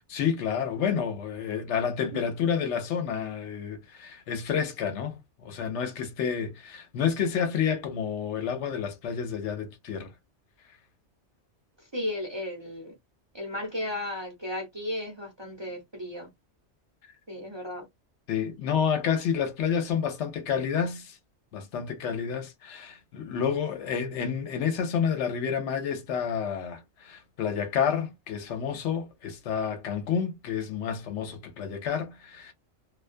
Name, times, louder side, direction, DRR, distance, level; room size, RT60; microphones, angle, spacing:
voice 1, 0.1-10.1 18.3-21.2 21.5-32.5, left 7 dB, 75° left, 0.9 m, -29 dB
voice 2, 11.9-12.9 13.3-16.3 17.3-17.8, left 1 dB, 30° right, 0.6 m, -34 dB
2.3 x 2.2 x 2.4 m
omnidirectional pair, 1.2 m